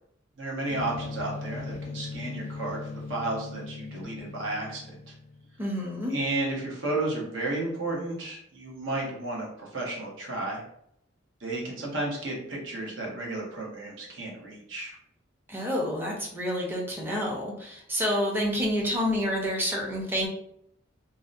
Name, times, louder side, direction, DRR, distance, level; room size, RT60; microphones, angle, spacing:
voice 1, 0.4-5.1 6.1-10.6 11.4-15.0, right 2 dB, 70° right, -3 dB, 0.8 m, -33 dB
sound 1, 0.7-5.6, left 4 dB, 40° left, 0.4 m, -39 dB
voice 2, 5.6-6.1 15.5-20.3, equal, 10° right, -2 dB, 0.5 m, -28 dB
2.6 x 2.0 x 2.5 m, 0.72 s
head